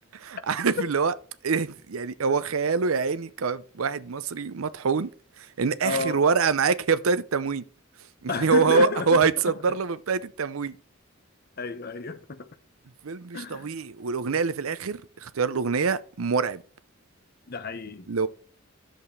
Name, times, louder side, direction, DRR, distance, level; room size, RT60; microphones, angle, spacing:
voice 1, 0.1-1.1 1.4-5.1 5.4-7.6 8.2-10.8 13.0-16.6 18.1-18.3, right 5 dB, 85° right, 0.6 m, -25 dB
voice 2, 5.8-6.2 8.3-9.6 11.6-12.5 13.3-13.7 17.5-18.1, left 3 dB, 45° left, 0.9 m, -31 dB
11.0 x 7.6 x 3.3 m
head